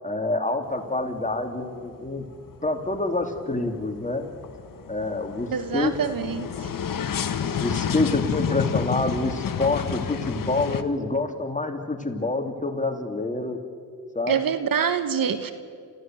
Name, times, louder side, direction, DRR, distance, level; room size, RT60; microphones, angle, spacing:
voice 1, 0.0-2.2 2.6-4.3 4.9-6.0 6.5-6.7 7.6-13.6 14.1-14.4, left 2 dB, 20° left, 4 dB, 3.1 m, -27 dB
sound 1, 0.7-1.3 1.6-10.8, left 7 dB, 55° left, 1.4 m, -30 dB
voice 2, 5.5-6.5 14.3-15.5, right 7 dB, 60° right, 10 dB, 1.5 m, -25 dB
29.0 x 15.0 x 7.8 m, 2.3 s
supercardioid pair, 55°, 39 cm